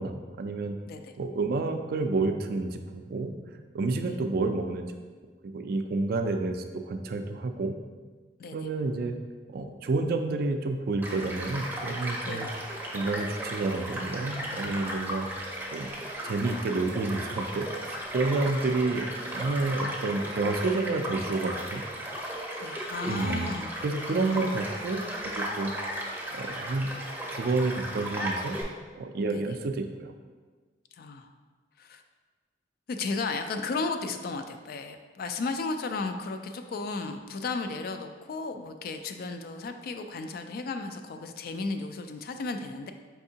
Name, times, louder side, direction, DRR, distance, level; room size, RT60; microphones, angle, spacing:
voice 1, 0.0-0.8 1.2-3.4 3.7-4.9 5.4-7.8 8.5-9.1 9.5-12.5 12.9-15.3 15.7-15.9 16.2-21.8 23.1-23.6 23.8-25.7 26.3-26.9 27.3-28.6 29.0-30.1, right 3 dB, 60° right, 6 dB, 0.3 m, -29 dB
Child speech kid speaking / Stream / Car passing by, 11.0-28.6, right 1 dB, 10° right, 0.6 m, -35 dB
voice 2, 22.6-23.7 24.3-24.6 29.3-29.5 30.9-31.3 31.8-32.0 32.9-42.9, left 3 dB, 55° left, 6 dB, 0.3 m, -34 dB
4.6 x 3.4 x 2.7 m, 1.4 s
head